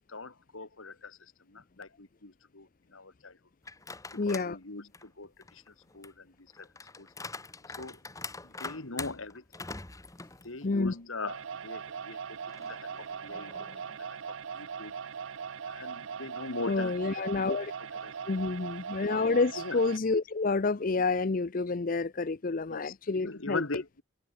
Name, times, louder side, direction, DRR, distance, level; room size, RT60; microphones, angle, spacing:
voice 1, 0.1-3.4 4.1-6.7 7.0-7.1 7.8-8.0 8.4-9.4 10.4-13.5 13.9-14.9 15.7-17.3 18.0-18.1 19.6-19.8 22.7-24.0, left 3 dB, 85° left, 2.4 m, -41 dB
sound 1, 3.6-4.5 4.9-11.0 11.4-11.5 12.5-14.0, left 3 dB, 15° left, 1.4 m, -44 dB
voice 2, 4.2-4.6 10.6-10.9 16.7-17.7 18.3-23.6, left 3 dB, 45° left, 0.6 m, -29 dB
sound 2, 11.3-20.0, right 6 dB, 80° right, 0.6 m, -40 dB
head